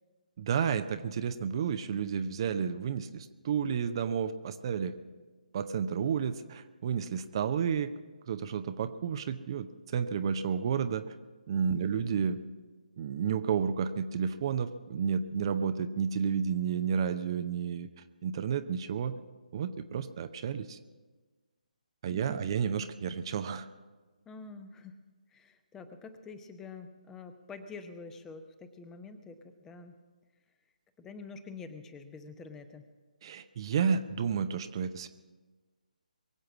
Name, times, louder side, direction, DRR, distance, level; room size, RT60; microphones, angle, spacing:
voice 1, 0.4-4.9 5.5-7.9 8.3-11.2 11.5-12.4 13.0-19.1 19.5-20.8 22.0-23.7 33.2-35.1, right 7 dB, 35° right, 10 dB, 0.7 m, -31 dB
voice 2, 11.7-12.1 22.1-22.5 24.3-25.0 25.3-29.9 31.0-32.9, left 4 dB, 10° left, 9 dB, 0.8 m, -47 dB
22.5 x 7.9 x 7.2 m, 1.3 s
figure-of-eight pair, 145°, 4 cm